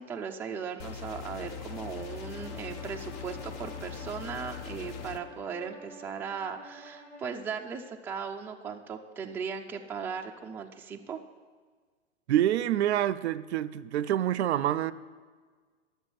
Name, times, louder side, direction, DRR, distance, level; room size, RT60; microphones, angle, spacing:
voice 1, 0.0-11.2, right 6 dB, 5° right, 0.4 m, -37 dB
sound 1, 0.8-5.2, left 8 dB, 35° left, 0.7 m, -41 dB
Bowed string instrument, 1.7-7.3, right 1 dB, 90° left, 3.3 m, -49 dB
voice 2, 12.3-14.9, right 12 dB, 65° right, 0.5 m, -27 dB
11.0 x 7.2 x 5.9 m
hypercardioid pair, 110°, 35 cm